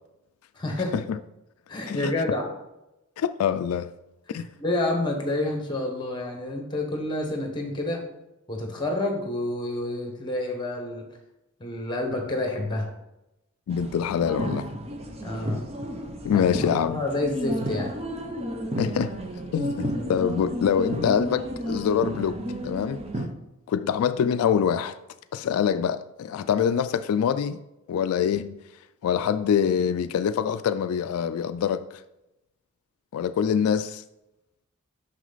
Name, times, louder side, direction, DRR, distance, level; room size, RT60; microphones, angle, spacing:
voice 1, 0.5-0.9 1.7-2.5 4.3-8.0 8.5-11.1 11.6-12.9 15.2-15.6 16.3-16.4 16.9-17.9, left 2 dB, 20° left, 1.3 m, -28 dB
voice 2, 3.2-3.9 4.3-4.5 13.7-14.7 16.2-17.0 18.8-19.2 19.5-22.4 22.6-23.0 23.7-25.0 25.3-27.6 27.9-28.6 29.0-32.0 33.1-34.0, left 8 dB, 85° left, 0.3 m, -25 dB
sound 1, 13.7-23.3, equal, 30° right, 0.7 m, -32 dB
6.2 x 5.9 x 4.0 m
head